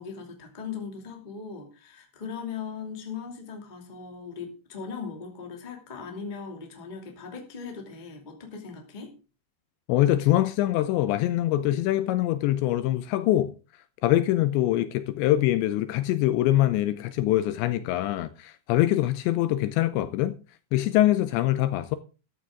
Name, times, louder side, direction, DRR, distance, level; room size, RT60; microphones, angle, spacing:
voice 1, 0.0-9.1, left 5 dB, 20° left, 1.3 m, -39 dB
voice 2, 9.9-13.5 14.0-20.4 20.7-22.0, left 14 dB, 80° left, 2.8 m, -24 dB
13.5 x 11.5 x 3.7 m
omnidirectional pair, 5.5 m